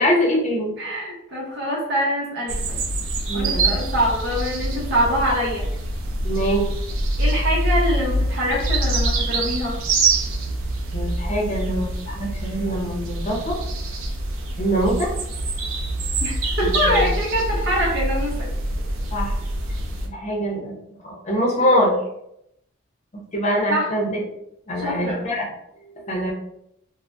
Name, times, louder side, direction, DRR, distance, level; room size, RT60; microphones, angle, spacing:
voice 1, 0.0-0.7 3.3-3.7 6.2-6.7 10.9-13.6 14.6-15.1 16.9-17.0 19.1-19.3 20.0-20.8 21.0-21.9 23.3-24.2 24.7-25.5 26.0-26.3, equal, 35° left, -2 dB, 0.6 m, -23 dB
voice 2, 0.8-2.8 3.3-5.7 7.2-9.8 16.2-18.5 23.7-23.9 24.8-25.2, equal, 55° right, -4 dB, 0.8 m, -24 dB
sound 1, 2.5-20.1, right 2 dB, 80° right, 0.5 m, -25 dB
2.6 x 2.1 x 3.3 m, 0.79 s
head